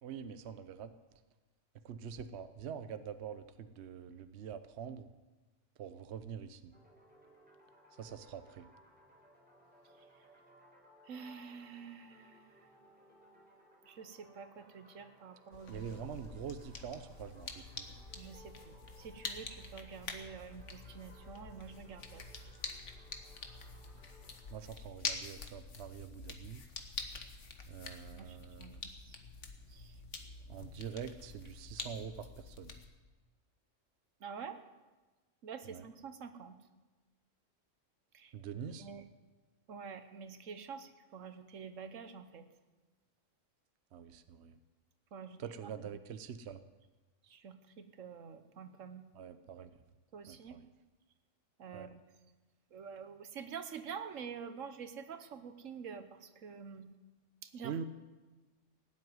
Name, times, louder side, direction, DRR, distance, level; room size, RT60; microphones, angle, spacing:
voice 1, 0.0-0.9 1.8-5.1 5.8-6.7 8.0-8.7 15.7-17.8 24.5-26.6 27.7-28.8 30.5-32.7 35.7-35.8 38.3-38.9 43.9-44.5 45.4-46.6 49.1-49.7 50.3-50.7 51.7-51.9 57.6-57.8, right 7 dB, 60° right, 11 dB, 1.0 m, -45 dB
sound 1, 6.7-24.6, equal, 5° right, 4.0 m, -62 dB
voice 2, 11.0-12.8 13.8-16.0 18.2-22.2 27.8-29.2 29.7-30.0 34.2-34.6 35.4-36.6 38.1-38.3 38.8-39.0 39.7-42.5 45.1-45.9 47.2-49.1 50.1-50.6 51.6-52.0 52.7-56.9 57.4-57.8, right 6 dB, 80° right, 10 dB, 1.4 m, -48 dB
sound 2, 15.5-32.9, left 4 dB, 65° left, 1.6 m, -46 dB
17.0 x 7.9 x 9.5 m, 1.2 s
omnidirectional pair, 1.3 m